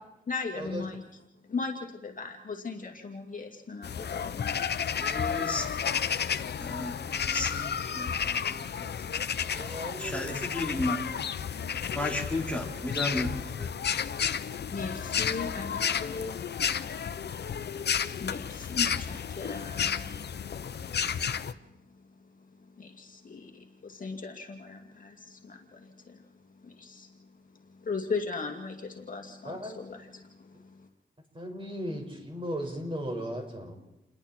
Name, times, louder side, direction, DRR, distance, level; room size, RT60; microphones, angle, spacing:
voice 1, 0.3-1.0 1.5-4.4 14.7-16.3 18.2-20.3 22.8-26.2 26.6-27.1 27.8-30.2, left 4 dB, 45° left, 3 dB, 2.4 m, -37 dB
sound 1, 3.8-21.5, left 7 dB, 60° left, 0.9 m, -32 dB
voice 2, 5.0-5.7 6.6-8.9 9.4-11.0 11.9-13.7, left 2 dB, 5° left, -2 dB, 4.7 m, -34 dB
voice 3, 9.5-10.4 29.4-30.0 31.3-33.8, equal, 25° right, 3 dB, 5.6 m, -36 dB
29.5 x 21.0 x 4.5 m, 0.88 s
cardioid pair, 95°, 19 cm